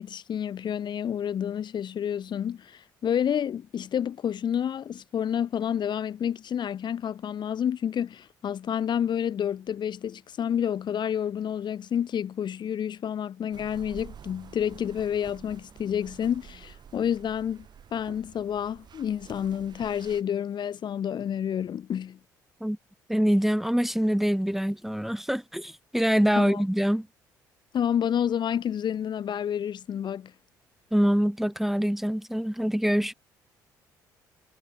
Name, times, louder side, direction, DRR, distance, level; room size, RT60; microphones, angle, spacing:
voice 1, 0.0-22.2 26.3-26.6 27.7-30.3, left 9 dB, 50° left, 2.8 m, -29 dB
sound 1, 13.5-20.2, right 8 dB, 45° right, 3.3 m, -49 dB
voice 2, 23.1-27.1 30.9-33.1, equal, 5° right, 2.1 m, -25 dB
hypercardioid pair, 55°, 10 cm